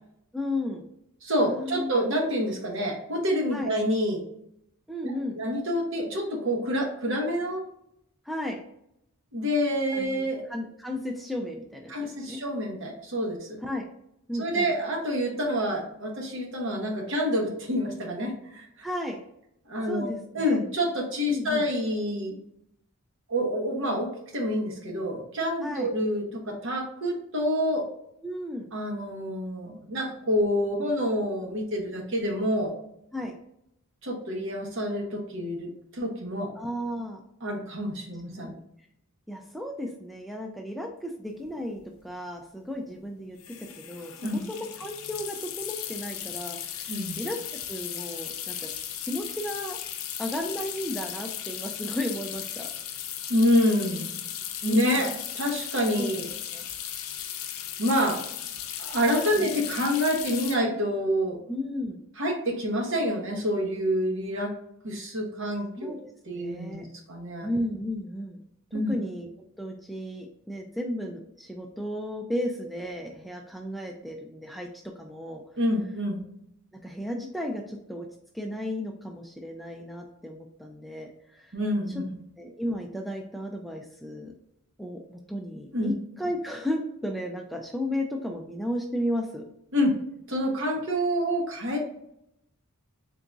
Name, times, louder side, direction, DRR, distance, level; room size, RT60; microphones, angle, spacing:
voice 1, 0.3-0.8 1.4-2.1 3.5-3.7 4.9-5.4 8.3-8.6 9.9-12.4 13.6-13.8 14.3-14.7 18.8-19.2 19.9-20.6 21.3-21.7 25.6-25.9 28.2-28.7 33.1-33.3 36.6-37.2 38.4-38.6 39.3-48.7 49.0-49.8 50.2-52.7 54.6-55.1 56.0-56.1 56.5-56.7 59.4-59.5 61.5-62.0 65.8-66.0 66.3-66.9 67.4-68.4 68.9-69.3 69.6-74.7 75.0-75.4 76.8-78.1 78.3-81.5 82.4-84.3 84.8-89.4, left 1 dB, ahead, 2 dB, 0.3 m, -34 dB
voice 2, 1.2-4.2 5.0-7.6 9.3-10.4 11.9-13.6 14.4-18.9 19.7-22.4 23.3-27.9 28.7-32.7 34.0-36.5 37.4-38.5 44.2-44.4 46.9-47.2 53.3-54.2 54.6-55.1 55.3-56.3 57.8-58.2 58.8-61.4 62.2-64.5 64.8-66.0 66.3-67.5 68.7-68.9 75.6-76.2 81.5-82.0 85.7-85.9 89.7-89.9 90.3-91.8, equal, 60° right, 0 dB, 1.1 m, -27 dB
sound 1, 41.4-41.5 41.7-42.0 43.4-60.6, left 10 dB, 70° left, 0.5 m, -36 dB
3.9 x 3.5 x 2.5 m, 0.76 s
head